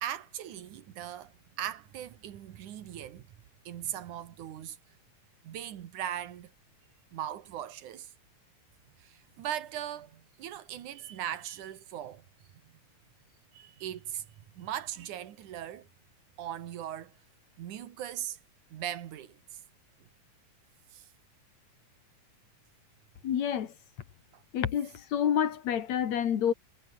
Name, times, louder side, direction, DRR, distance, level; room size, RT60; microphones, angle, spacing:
voice 1, 0.0-3.3 3.7-4.8 5.4-6.5 7.1-8.1 9.0-12.3 13.5-14.3 14.5-15.9 16.4-17.1 17.6-18.4 18.7-19.6 20.9-21.1, right 11 dB, 75° right, 2.9 m, -39 dB
voice 2, 23.2-23.7 24.5-26.5, left 9 dB, 60° left, 2.9 m, -28 dB
omnidirectional pair, 3.6 m